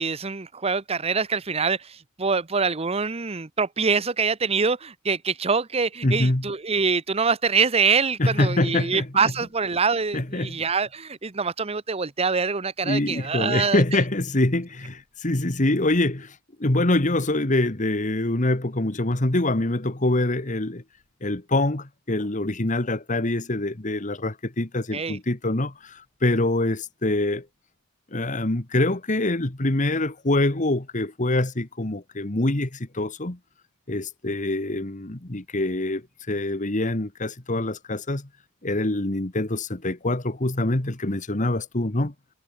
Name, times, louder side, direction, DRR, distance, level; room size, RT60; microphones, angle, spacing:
voice 1, 0.0-13.8 24.9-25.2, right 5 dB, 30° right, 0.9 m, -25 dB
voice 2, 6.0-6.5 8.2-9.3 10.1-10.6 12.8-20.8 21.2-27.4 28.1-33.4 33.9-38.3 38.6-42.1, left 2 dB, 40° left, 1.7 m, -25 dB
head